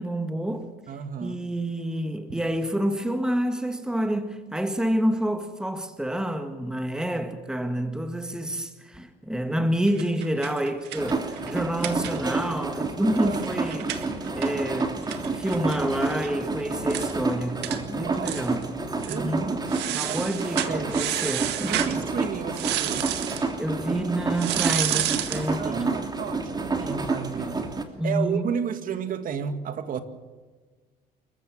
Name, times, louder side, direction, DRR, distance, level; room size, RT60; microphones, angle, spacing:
voice 1, 0.0-0.7 1.2-18.7 19.0-19.5 19.9-22.0 23.6-25.9 28.0-28.5, right 1 dB, 5° right, 1.8 m, -28 dB
voice 2, 0.9-1.5 2.3-2.4 13.0-13.5 17.9-18.4 19.0-20.9 21.7-23.1 25.6-30.0, right 7 dB, 55° right, 2.0 m, -33 dB
sound 1, 9.9-12.5 12.8-12.9 13.2-16.3 16.6-16.7 16.9-17.1 17.6-17.8 18.2-18.7 19.0-19.2 19.7-22.0 22.5-23.5 24.3-25.5, right 13 dB, 85° right, 1.9 m, -31 dB
sound 2, 11.0-27.8, right 3 dB, 25° right, 2.9 m, -30 dB
28.0 x 15.0 x 7.4 m
cardioid pair, 110°, 17 cm